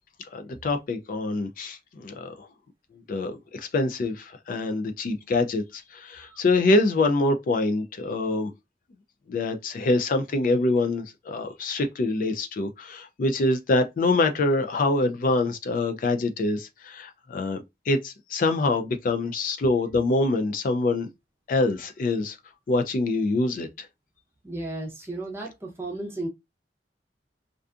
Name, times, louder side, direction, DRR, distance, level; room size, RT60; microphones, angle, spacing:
voice 1, 0.3-2.5 3.1-8.5 9.3-17.6 17.9-21.1 21.5-22.4 22.7-23.9, left 2 dB, 50° left, 0.3 m, -25 dB
voice 2, 24.4-26.3, right 2 dB, 15° right, 0.6 m, -34 dB
2.5 x 2.3 x 2.3 m
head